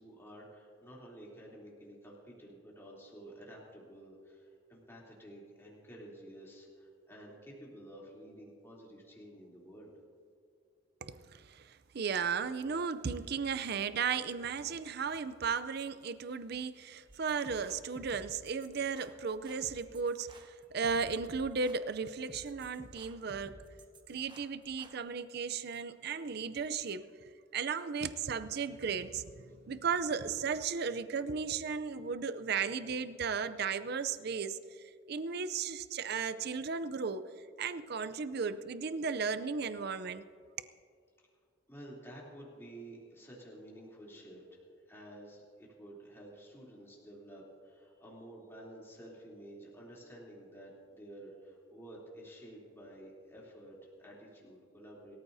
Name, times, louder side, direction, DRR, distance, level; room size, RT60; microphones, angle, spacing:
voice 1, 0.0-10.0 41.7-55.2, right 1 dB, 15° left, -5 dB, 3.1 m, -51 dB
voice 2, 11.0-23.5 24.1-34.6 35.1-37.2 37.6-40.2, right 5 dB, 55° right, 12 dB, 0.5 m, -35 dB
sound 1, 17.1-25.0, right 1 dB, 25° right, 0.9 m, -55 dB
26.0 x 14.0 x 2.7 m, 2.2 s
head